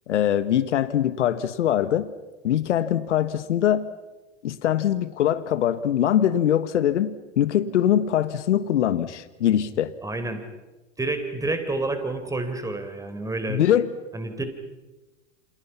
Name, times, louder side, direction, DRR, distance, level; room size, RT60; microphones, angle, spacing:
voice 1, 0.1-2.1 2.4-3.9 4.4-9.9 13.5-13.9, left 10 dB, 75° left, 13 dB, 1.6 m, -22 dB
voice 2, 10.0-10.4 11.0-13.6 14.1-14.4, right 2 dB, 10° right, 8 dB, 4.1 m, -29 dB
28.5 x 28.0 x 5.8 m, 1.1 s
hypercardioid pair, 105°, 36 cm